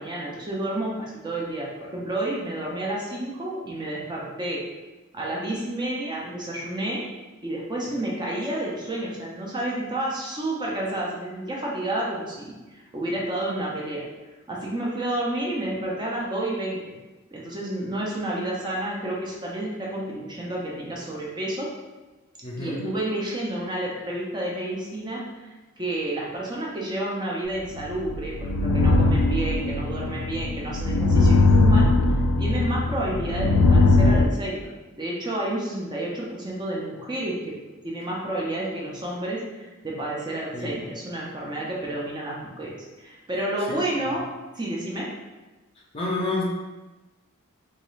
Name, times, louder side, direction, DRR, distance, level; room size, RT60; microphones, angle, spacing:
voice 1, 0.0-4.6 5.1-7.1 7.4-14.1 14.5-17.0 17.3-21.7 22.6-37.6 37.8-44.3 44.5-45.1, right 1 dB, 20° right, -3 dB, 0.5 m, -30 dB
voice 2, 22.4-22.8 40.5-40.8 43.7-44.2 45.9-46.4, left 2 dB, 25° left, -3 dB, 0.5 m, -30 dB
sound 1, 27.8-34.2, left 2 dB, 85° left, 0.3 m, -20 dB
3.1 x 2.3 x 3.1 m, 1.1 s
head